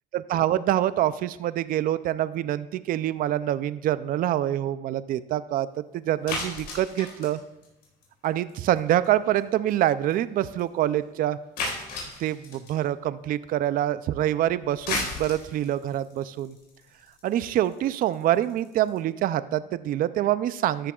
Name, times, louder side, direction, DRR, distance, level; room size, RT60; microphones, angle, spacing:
voice 1, 0.1-5.7 5.9-7.4 8.2-11.4 12.2-16.6 17.2-20.9, right 12 dB, 55° right, 15 dB, 0.4 m, -25 dB
sound 1, 6.3-8.5 8.8-9.1 9.4-9.5 9.7-9.8 10.1-10.2 10.6-10.7 11.6-12.8 14.6-19.0, left 3 dB, 80° left, 4.1 m, -34 dB
13.5 x 9.8 x 2.4 m, 0.92 s
cardioid pair, 110°, 17 cm